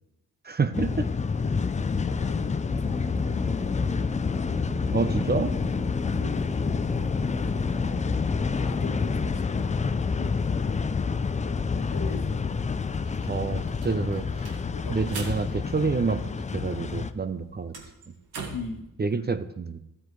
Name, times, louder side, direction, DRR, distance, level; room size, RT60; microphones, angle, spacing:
voice 1, 0.4-1.1 4.9-5.5 13.2-14.3 14.9-16.2 16.5-17.7 19.0-19.8, right 4 dB, 25° right, 11 dB, 0.6 m, -27 dB
sound 1, 0.7-17.1, left 5 dB, 20° left, 0.4 m, -28 dB
voice 2, 2.1-4.0 5.7-6.6 8.6-10.8 11.4-13.0 14.7-15.4 17.3-17.6 18.5-18.9 19.1-19.3, left 4 dB, 50° left, 6 dB, 1.4 m, -42 dB
sound 2, 2.7-9.5, left 1 dB, ahead, 1.0 m, -36 dB
sound 3, 12.9-16.6 16.9-18.8, right 4 dB, 70° right, 1.8 m, -43 dB
13.5 x 7.6 x 3.2 m, 0.87 s
supercardioid pair, 55°, 41 cm